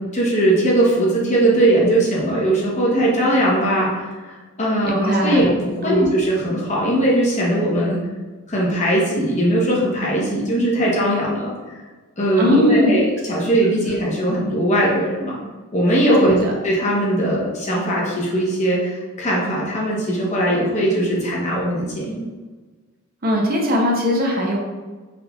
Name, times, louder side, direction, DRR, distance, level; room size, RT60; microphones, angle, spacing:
voice 1, 0.1-8.0 8.5-11.8 12.2-15.4 15.7-16.3 16.6-22.2, right 1 dB, 35° left, -4 dB, 0.9 m, -19 dB
voice 2, 4.8-5.4 5.8-6.1 12.4-13.0 16.2-16.5 23.2-24.6, equal, 45° right, -1 dB, 0.7 m, -19 dB
3.6 x 3.2 x 2.3 m, 1.3 s
head